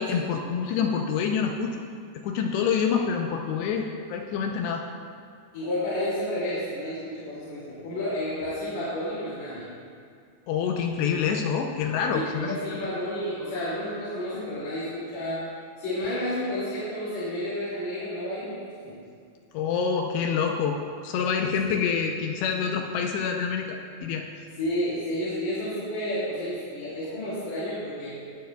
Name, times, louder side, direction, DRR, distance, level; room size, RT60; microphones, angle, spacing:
voice 1, 0.0-1.8 2.2-4.8 10.5-12.8 19.5-24.3, left 6 dB, 80° left, 3 dB, 2.5 m, -27 dB
voice 2, 5.5-9.7 12.1-15.4 15.8-19.0 21.6-21.9 24.6-28.2, left 1 dB, 45° left, -10 dB, 3.2 m, -31 dB
18.5 x 10.5 x 2.3 m, 2.3 s
omnidirectional pair, 5.4 m